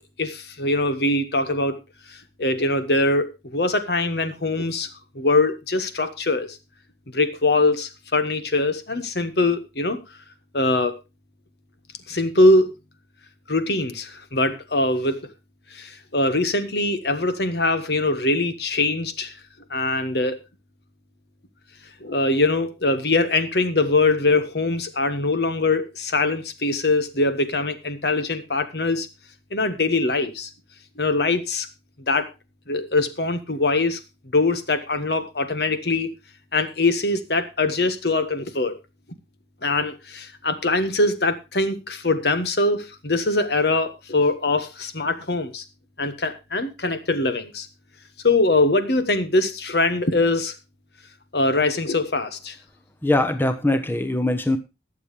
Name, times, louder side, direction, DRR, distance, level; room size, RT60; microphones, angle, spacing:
voice 1, 0.2-1.8 2.4-4.9 5.1-6.6 7.1-10.0 10.5-11.0 12.1-12.7 13.5-15.2 15.7-19.3 19.7-20.4 22.0-29.1 29.5-30.5 31.0-31.7 32.1-32.3 32.7-34.0 34.3-36.1 36.5-38.7 39.6-45.6 46.0-47.7 48.2-50.5 51.3-52.5, left 2 dB, 60° left, 10 dB, 1.5 m, -22 dB
voice 2, 53.0-54.6, left 1 dB, 10° left, 8 dB, 0.9 m, -21 dB
21.0 x 7.4 x 3.3 m, 0.26 s
head